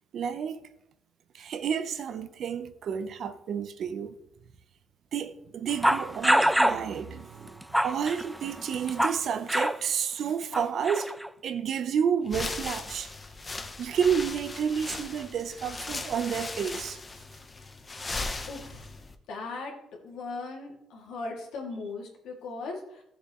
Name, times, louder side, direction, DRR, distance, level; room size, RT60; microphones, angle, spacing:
voice 1, 0.1-0.6 1.3-4.1 5.1-11.1 11.4-13.1 13.8-17.0, right 7 dB, 65° right, 0.8 m, -30 dB
sound 1, 5.8-6.8 7.5-9.2 9.5-9.8 10.5-11.3, equal, 5° right, 0.3 m, -25 dB
sound 2, 12.3-19.1, left 3 dB, 30° left, 1.0 m, -38 dB
voice 2, 18.5-18.9 19.3-19.7 20.0-23.0, left 3 dB, 90° left, 2.5 m, -38 dB
14.0 x 7.1 x 3.1 m
cardioid pair, 90°, 0 cm